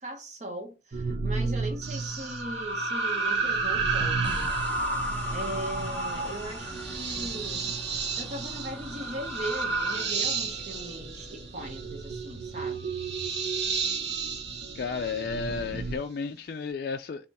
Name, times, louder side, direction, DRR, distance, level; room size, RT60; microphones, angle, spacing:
voice 1, 0.0-4.5 5.3-7.7 8.2-12.9, right 1 dB, 40° right, 1.0 m, -39 dB
sound 1, 0.9-16.0, right 3 dB, 60° right, 0.7 m, -37 dB
sound 2, 1.8-15.7, right 4 dB, 75° right, 1.7 m, -32 dB
sound 3, 4.2-13.6, left 1 dB, 10° left, 0.8 m, -46 dB
voice 2, 14.7-17.3, left 5 dB, 55° left, 0.3 m, -33 dB
3.5 x 3.0 x 4.1 m
head